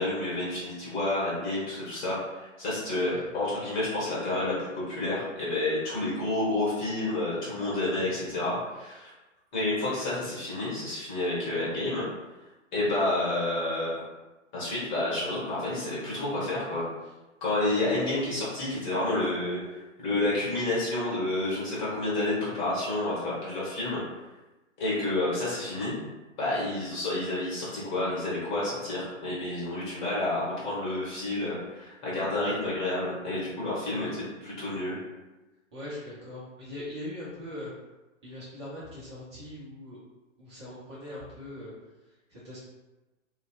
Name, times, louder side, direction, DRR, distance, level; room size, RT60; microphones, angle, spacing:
voice 1, 0.0-9.1 9.5-12.1 12.7-14.0 14.5-16.8 17.4-24.0 24.8-25.9 26.4-34.1 34.4-35.0, left 2 dB, 35° left, -8 dB, 1.2 m, -29 dB
voice 2, 17.7-18.0 34.0-34.1 35.7-37.7 38.2-40.0 40.4-41.7 42.0-42.6, left 1 dB, 20° right, -8 dB, 0.5 m, -41 dB
2.7 x 2.1 x 2.3 m, 1.1 s
figure-of-eight pair, 120°, 39 cm